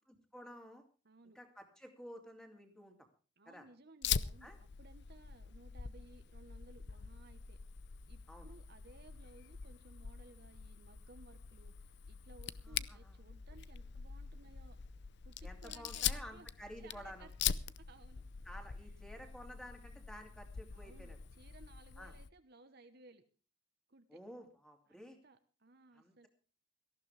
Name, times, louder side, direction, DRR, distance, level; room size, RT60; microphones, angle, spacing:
voice 1, 0.3-0.8 1.3-2.9 3.5-3.6 4.4-4.6 8.3-8.5 12.6-13.2 15.4-17.3 18.4-21.2 22.0-22.1 24.1-25.2 25.9-26.3, equal, 5° left, 4 dB, 2.7 m, -52 dB
voice 2, 1.0-1.4 3.4-7.6 8.1-14.8 15.2-16.5 16.8-17.6 17.9-18.2 18.8-18.9 20.7-23.2 23.9-24.2 24.9-26.3, right 2 dB, 50° right, 8 dB, 1.1 m, -60 dB
Fire, 4.0-22.3, left 8 dB, 55° left, 0.6 m, -43 dB
18.5 x 14.5 x 3.4 m, 0.37 s
head